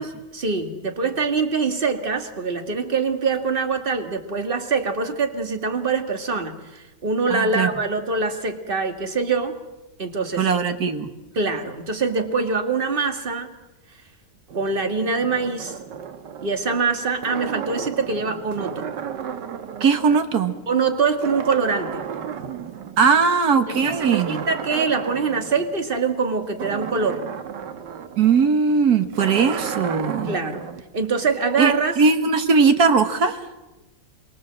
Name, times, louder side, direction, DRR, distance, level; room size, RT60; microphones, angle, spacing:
voice 1, 0.0-9.6 10.0-10.5 11.4-13.5 14.5-15.8 16.4-18.9 20.7-22.0 23.7-27.2 30.3-30.7 30.9-31.9, right 4 dB, 30° right, 6 dB, 2.0 m, -24 dB
voice 2, 7.3-7.7 10.4-11.1 19.8-20.6 23.0-24.4 28.2-30.4 31.6-33.5, right 5 dB, 65° right, 8 dB, 2.1 m, -19 dB
sound 1, 14.5-20.9 21.2-23.2 23.7-30.8, right 7 dB, 85° right, 1.8 m, -34 dB
26.0 x 23.5 x 7.6 m, 1.0 s
omnidirectional pair, 1.8 m